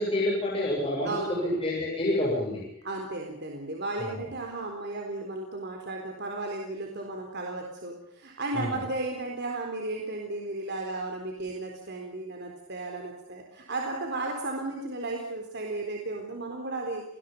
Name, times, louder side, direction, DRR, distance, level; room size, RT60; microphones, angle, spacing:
voice 1, 0.0-2.6 4.0-4.2 8.5-8.8, left 1 dB, 25° left, -4 dB, 7.4 m, -28 dB
voice 2, 1.0-1.6 2.8-17.0, right 2 dB, 50° right, 1 dB, 4.0 m, -34 dB
29.5 x 20.5 x 5.5 m, 0.76 s
head